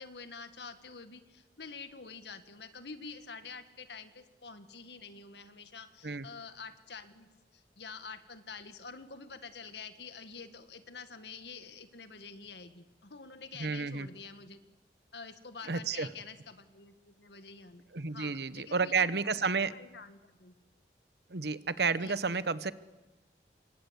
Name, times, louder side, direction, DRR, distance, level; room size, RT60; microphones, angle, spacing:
voice 1, 0.0-14.6 15.1-20.6 22.0-22.2, left 5 dB, 75° left, 10 dB, 1.9 m, -48 dB
voice 2, 13.6-14.1 15.7-16.1 17.9-19.7 21.3-22.7, right 4 dB, 70° right, 15 dB, 1.0 m, -31 dB
27.0 x 24.0 x 8.3 m, 1.1 s
head